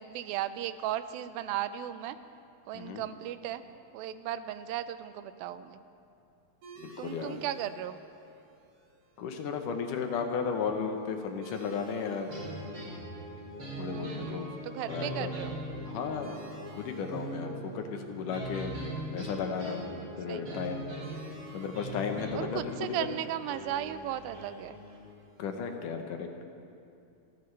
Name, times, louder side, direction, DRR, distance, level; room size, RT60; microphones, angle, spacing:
voice 1, 0.0-2.2 2.7-3.6 3.9-5.8 7.0-8.0 13.9-15.5 20.3-20.6 22.3-24.8, right 12 dB, 85° right, 12 dB, 2.4 m, -36 dB
sound 1, 6.6-25.8, right 2 dB, 65° right, 4.1 m, -57 dB
voice 2, 6.8-7.4 9.2-12.3 13.8-14.5 14.9-15.4 15.9-16.3 16.8-18.8 19.1-19.9 20.2-20.9 21.5-23.1 25.4-26.3, left 6 dB, 70° left, 5 dB, 2.3 m, -34 dB
sound 2, 12.3-25.0, equal, 35° right, 4.0 m, -41 dB
27.5 x 14.5 x 3.3 m, 2.5 s
omnidirectional pair, 4.1 m